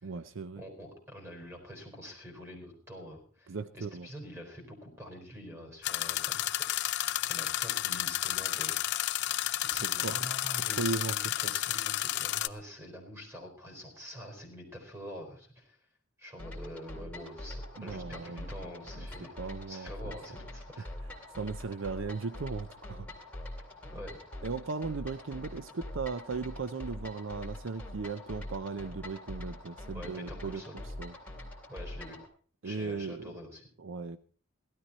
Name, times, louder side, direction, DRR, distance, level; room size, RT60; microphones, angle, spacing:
voice 1, 0.0-0.6 3.5-4.1 9.8-10.2 10.7-11.1 17.8-18.5 19.0-19.1 19.4-20.2 21.4-23.1 24.4-30.6 31.0-31.1 32.6-33.4 33.8-34.2, right 4 dB, 70° right, 14 dB, 0.6 m, -37 dB
voice 2, 0.6-9.3 9.6-15.8 16.2-19.3 19.7-20.9 23.9-24.2 29.9-30.7 31.7-32.2 32.6-33.7, equal, 10° right, 3 dB, 4.4 m, -46 dB
sound 1, 5.8-12.5, left 14 dB, 60° left, 0.5 m, -31 dB
sound 2, 16.4-32.3, left 1 dB, 5° left, 3.1 m, -44 dB
16.5 x 13.0 x 4.3 m, 0.43 s
head